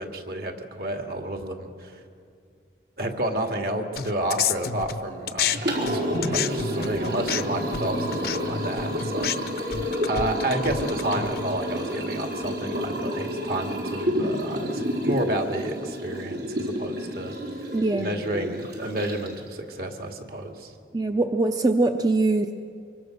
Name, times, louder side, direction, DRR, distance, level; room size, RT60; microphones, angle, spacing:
voice 1, 0.0-1.9 3.0-9.4 9.6-9.7 10.1-17.3 18.0-20.7, right 1 dB, 60° right, 4 dB, 2.3 m, -30 dB
sound 1, 4.0-5.6 5.8-11.6, left 7 dB, 60° left, 0.8 m, -30 dB
Liquid, 5.4-19.5, equal, 80° right, 4.4 m, -29 dB
voice 2, 17.7-18.1 20.9-22.5, right 2 dB, 20° right, 6 dB, 0.6 m, -22 dB
25.5 x 24.0 x 6.7 m, 2.4 s
head